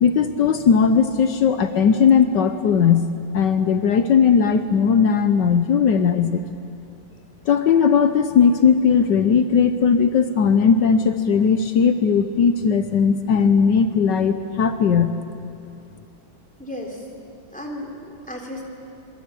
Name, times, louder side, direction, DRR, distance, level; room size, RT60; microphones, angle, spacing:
voice 1, 0.0-3.1 3.3-6.4 7.5-15.1, left 6 dB, 70° left, 9 dB, 1.5 m, -18 dB
voice 2, 16.6-17.1 17.5-18.6, left 1 dB, 5° left, 0 dB, 3.6 m, -34 dB
26.5 x 22.5 x 8.5 m, 2.5 s
omnidirectional pair, 2.1 m